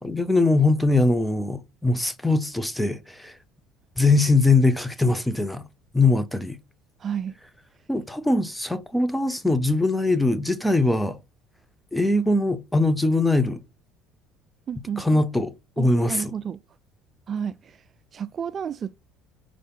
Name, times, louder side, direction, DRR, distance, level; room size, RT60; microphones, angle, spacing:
voice 1, 0.0-3.3 4.0-5.6 5.9-6.6 7.9-11.2 11.9-13.6 15.0-16.3, left 2 dB, 5° left, 0.8 m, -22 dB
voice 2, 7.0-7.4 14.7-15.2 15.8-16.6 17.3-17.8 18.1-19.0, right 8 dB, 40° right, 0.3 m, -31 dB
4.9 x 4.2 x 5.3 m
supercardioid pair, 90°, 0 cm